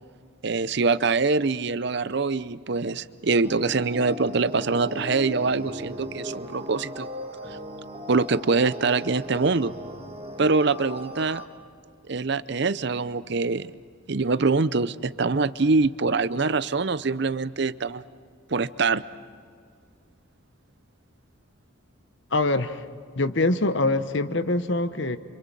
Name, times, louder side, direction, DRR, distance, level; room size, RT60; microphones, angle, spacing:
voice 1, 0.4-7.1 8.1-9.7 10.4-11.4 12.1-13.7 14.1-18.0 18.5-19.0, right 4 dB, 55° right, 16 dB, 0.6 m, -24 dB
sound 1, 3.4-11.4, equal, 30° right, 1.6 m, -38 dB
voice 2, 22.3-22.8 23.1-25.2, left 2 dB, 60° left, 11 dB, 1.1 m, -24 dB
29.0 x 26.5 x 7.6 m, 2.1 s
head